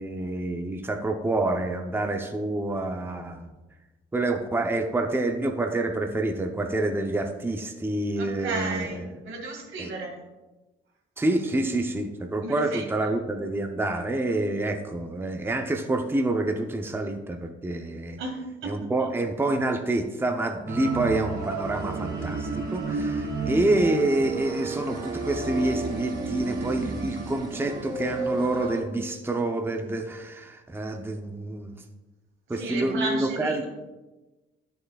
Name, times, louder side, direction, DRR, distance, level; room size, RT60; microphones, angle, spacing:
voice 1, 0.0-3.5 4.1-9.0 9.8-9.9 11.2-18.2 18.6-31.7 32.5-33.6, right 2 dB, 10° right, 4 dB, 0.7 m, -27 dB
voice 2, 8.2-9.0 9.2-10.1 12.4-13.1 18.2-18.4 18.6-18.9 32.5-33.7, right 3 dB, 85° right, 0 dB, 2.0 m, -33 dB
sound 1, 20.7-28.8, right 3 dB, 55° right, 2.5 m, -32 dB
10.5 x 6.7 x 2.4 m, 1.1 s
cardioid pair, 90°, 20 cm